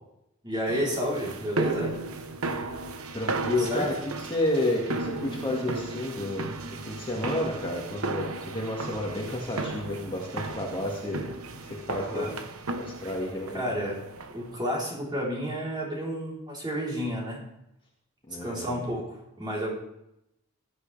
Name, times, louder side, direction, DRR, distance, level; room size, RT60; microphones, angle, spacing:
voice 1, 0.4-1.9 3.6-3.9 11.9-12.3 13.5-14.0 14.3-17.4 18.4-19.7, equal, 20° right, -4 dB, 3.9 m, -31 dB
sound 1, 0.7-14.6, right 3 dB, 70° right, 1.1 m, -35 dB
voice 2, 3.1-11.3 11.6-12.3 12.8-13.7 18.3-18.9, left 1 dB, 25° left, -2 dB, 2.0 m, -31 dB
16.5 x 11.5 x 3.4 m, 0.82 s
head